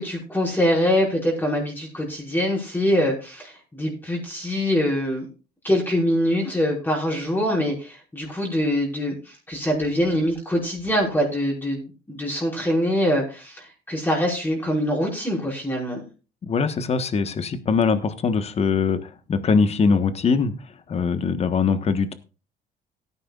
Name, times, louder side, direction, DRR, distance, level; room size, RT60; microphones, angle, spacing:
voice 1, 0.0-5.3 5.6-16.1, equal, 10° left, -2 dB, 5.3 m, -24 dB
voice 2, 16.4-20.5 20.9-22.1, left 5 dB, 40° left, 11 dB, 1.3 m, -22 dB
17.5 x 9.8 x 2.4 m, 0.33 s
cardioid pair, 110°, 17 cm